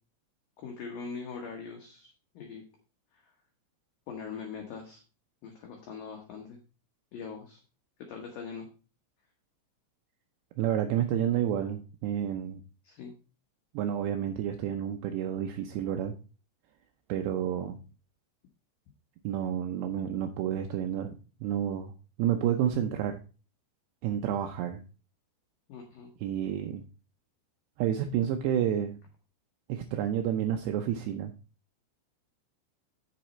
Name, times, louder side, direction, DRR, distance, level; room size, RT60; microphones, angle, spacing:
voice 1, 0.6-2.6 3.1-3.3 4.1-5.0 5.4-6.6 7.1-7.6 8.0-8.7 12.8-13.1 25.7-26.1, left 5 dB, 70° left, 2 dB, 2.1 m, -42 dB
voice 2, 10.6-12.6 13.7-16.1 17.1-17.8 19.2-21.9 22.2-23.2 24.0-24.8 26.2-26.8 27.8-29.0 29.7-31.3, right 10 dB, 85° right, 5 dB, 2.4 m, -30 dB
7.9 x 7.1 x 4.3 m, 0.34 s
omnidirectional pair, 5.7 m